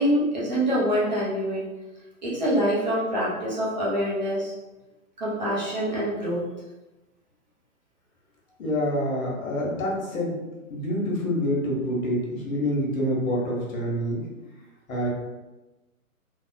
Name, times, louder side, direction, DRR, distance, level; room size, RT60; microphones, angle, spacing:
voice 1, 0.0-1.7 2.2-4.5 5.2-6.4, equal, 30° right, -6 dB, 0.6 m, -25 dB
voice 2, 8.6-10.3 10.7-14.2 14.9-15.1, equal, 65° left, -2 dB, 1.2 m, -26 dB
3.5 x 2.2 x 2.6 m, 1.1 s
hypercardioid pair, 160°, 44 cm